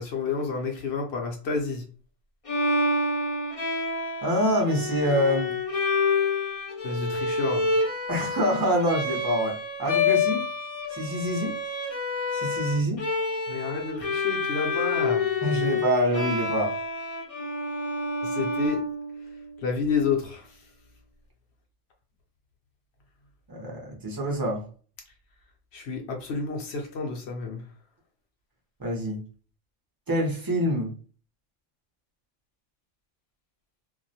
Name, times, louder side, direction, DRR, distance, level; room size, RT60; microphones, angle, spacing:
voice 1, 0.0-1.8 6.8-7.7 13.5-15.3 18.2-18.8 19.6-20.6 25.7-27.6, left 5 dB, 65° left, 0.8 m, -30 dB
Bowed string instrument, 2.5-19.4, left 3 dB, 45° left, 0.5 m, -28 dB
voice 2, 4.2-5.5 8.1-10.4 10.9-11.6 12.3-13.0 15.4-16.7 23.5-24.6 28.8-29.2 30.1-30.9, equal, 25° right, 0.4 m, -26 dB
2.3 x 2.1 x 2.6 m
omnidirectional pair, 1.3 m